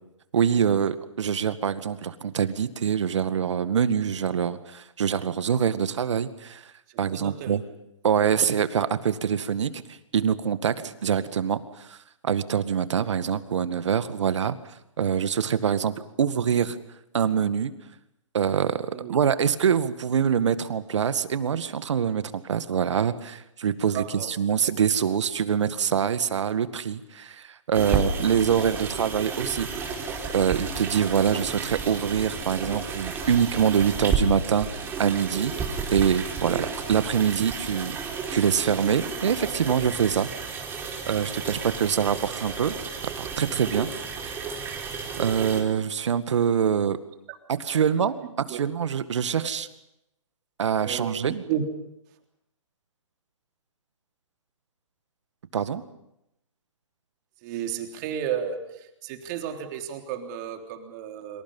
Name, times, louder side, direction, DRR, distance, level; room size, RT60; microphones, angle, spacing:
voice 1, 0.3-6.6 7.0-7.6 8.0-9.8 10.1-11.6 11.9-12.0 12.2-14.5 15.0-16.8 17.1-17.7 18.3-24.0 24.4-29.7 30.3-35.5 35.9-38.0 38.3-40.3 41.1-42.7 43.0-43.9 44.2-44.7 45.2-47.0 47.5-48.1 48.5-49.7 50.6-51.4 55.5-55.8, right 7 dB, 65° right, 12 dB, 1.9 m, -25 dB
voice 2, 6.9-7.6 18.9-19.2 23.9-24.3 27.8-28.2 36.4-36.6 47.3-47.4 48.5-48.6 49.4-49.5 50.7-51.7 57.4-61.4, right 9 dB, 35° right, 4 dB, 3.6 m, -33 dB
sound 1, 27.7-45.6, right 4 dB, 15° right, 4.3 m, -32 dB
28.5 x 26.0 x 5.6 m, 0.83 s
hypercardioid pair, 140°, 16 cm